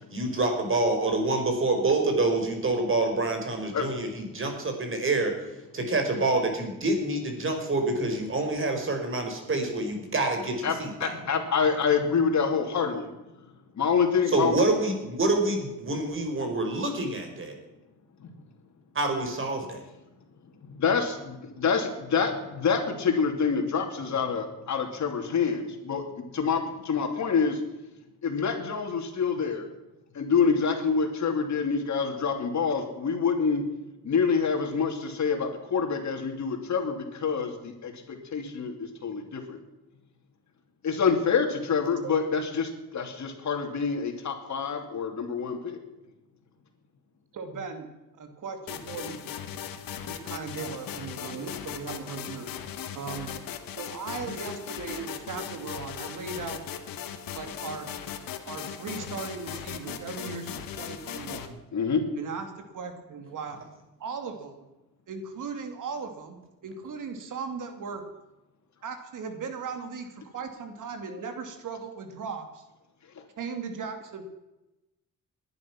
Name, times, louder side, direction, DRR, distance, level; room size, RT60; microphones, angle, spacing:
voice 1, 0.1-5.4 5.7-11.1 14.3-17.6 18.9-19.8, right 2 dB, 35° right, 4 dB, 4.6 m, -27 dB
voice 2, 10.6-13.1 13.7-14.5 18.2-18.3 20.4-27.6 28.2-29.7 30.1-33.7 34.0-39.6 40.8-45.8 61.7-62.0 73.1-73.2, left 5 dB, 55° left, 4 dB, 2.9 m, -27 dB
voice 3, 47.3-49.4 50.1-52.5 52.9-53.3 53.8-56.6 57.3-57.9 58.5-61.6 62.2-63.6 64.0-64.6 65.1-68.0 68.8-72.6 73.4-74.2, right 5 dB, 65° right, 6 dB, 2.5 m, -37 dB
sound 1, 48.7-61.5, left 9 dB, 80° left, 1.6 m, -38 dB
19.5 x 11.0 x 6.0 m, 1.0 s
cardioid pair, 90°, 34 cm